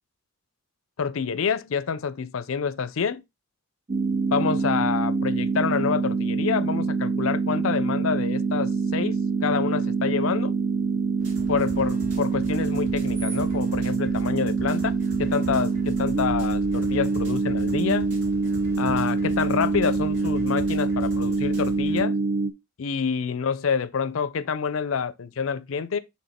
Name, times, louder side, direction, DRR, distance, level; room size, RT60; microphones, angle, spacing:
voice 1, 1.0-3.2 4.3-10.6 11.5-18.1 18.8-22.2 22.8-26.0, left 6 dB, 90° left, 0.5 m, -27 dB
sound 1, 3.9-22.5, right 4 dB, 35° right, 0.6 m, -25 dB
sound 2, 11.2-22.0, equal, 65° right, 2.3 m, -41 dB
6.3 x 3.6 x 4.2 m
head